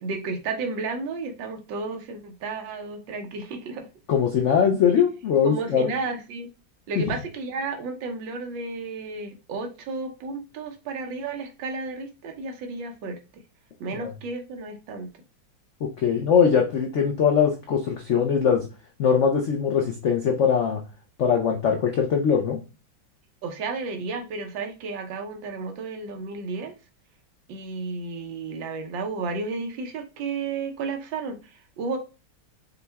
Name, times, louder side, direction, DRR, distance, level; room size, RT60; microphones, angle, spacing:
voice 1, 0.0-3.9 5.4-6.5 6.9-13.2 13.8-15.1 16.1-16.2 23.4-26.7 27.5-32.0, right 4 dB, 80° right, 1.5 m, -32 dB
voice 2, 4.1-5.9 13.9-14.0 15.8-18.7 19.0-20.8 21.2-22.6, left 7 dB, 80° left, 0.6 m, -21 dB
5.8 x 2.2 x 3.4 m
omnidirectional pair, 2.0 m